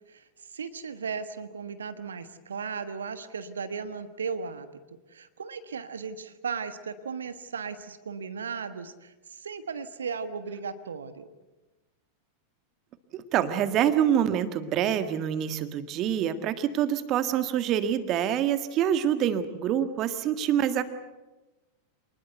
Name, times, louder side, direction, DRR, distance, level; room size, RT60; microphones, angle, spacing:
voice 1, 0.5-4.7 5.1-11.3, right 5 dB, 70° right, 11 dB, 1.4 m, -36 dB
voice 2, 13.1-20.8, right 10 dB, 35° right, 10 dB, 1.7 m, -26 dB
27.0 x 20.0 x 8.1 m, 1.1 s
figure-of-eight pair, 90°, 0 cm